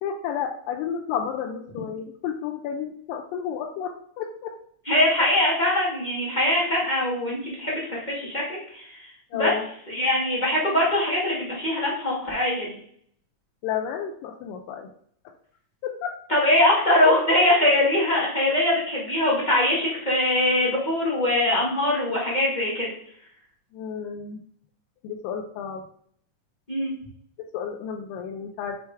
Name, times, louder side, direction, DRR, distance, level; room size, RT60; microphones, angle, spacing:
voice 1, 0.0-4.5 5.2-5.3 9.3-9.7 13.6-14.9 15.8-16.2 23.7-24.4 25.0-25.8 27.5-28.8, left 8 dB, 90° left, 4 dB, 2.3 m, -31 dB
voice 2, 4.8-9.5 9.9-12.8 16.3-22.9 26.7-26.9, left 1 dB, 25° left, -6 dB, 0.9 m, -22 dB
6.8 x 3.3 x 4.5 m, 0.63 s
omnidirectional pair, 3.8 m